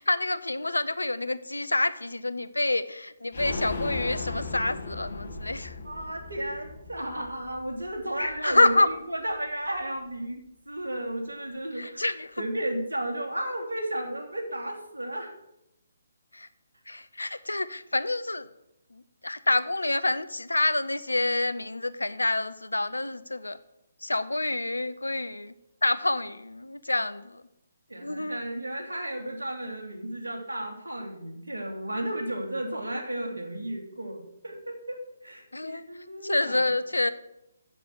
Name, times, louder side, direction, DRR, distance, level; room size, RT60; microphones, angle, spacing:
voice 1, 0.0-5.8 8.2-8.9 11.7-12.4 16.3-16.5 16.9-18.5 18.9-23.6 24.0-25.5 25.8-27.4 28.0-28.4 35.5-35.8 36.2-37.1, left 2 dB, 80° left, 15 dB, 0.8 m, -27 dB
sound 1, 3.3-8.9 9.3-9.4 9.7-9.8, left 3 dB, 55° left, 1.9 m, -37 dB
voice 2, 5.8-10.4 10.7-15.3 27.9-36.7, right 1 dB, 75° right, 0 dB, 2.9 m, -34 dB
7.6 x 7.5 x 8.0 m, 0.84 s
figure-of-eight pair, 140°, 0 cm